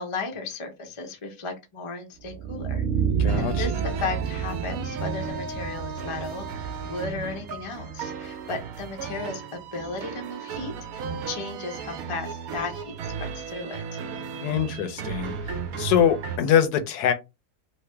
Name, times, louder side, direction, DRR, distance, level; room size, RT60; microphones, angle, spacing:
voice 1, 0.0-2.8 3.4-14.0, left 3 dB, 50° left, 0.3 m, -35 dB
sound 1, 2.2-8.3, right 6 dB, 55° right, 0.7 m, -30 dB
voice 2, 3.2-3.7 14.4-15.3 15.8-17.1, left 9 dB, 85° left, 1.2 m, -23 dB
sound 2, 3.3-16.4, right 6 dB, 70° right, 1.0 m, -35 dB
3.3 x 2.1 x 3.3 m
omnidirectional pair, 1.6 m